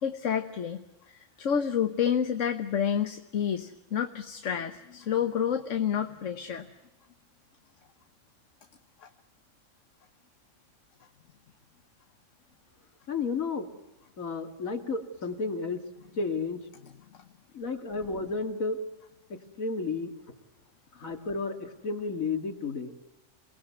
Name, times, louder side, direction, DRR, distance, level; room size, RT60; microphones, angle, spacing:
voice 1, 0.0-6.7, left 8 dB, 65° left, 8 dB, 1.5 m, -29 dB
voice 2, 13.1-13.7 14.2-15.8 16.2-16.6 17.5-18.8 19.3-20.1 21.0-22.9, left 4 dB, 85° left, 6 dB, 2.6 m, -32 dB
28.5 x 19.5 x 9.5 m, 0.99 s
omnidirectional pair, 1.4 m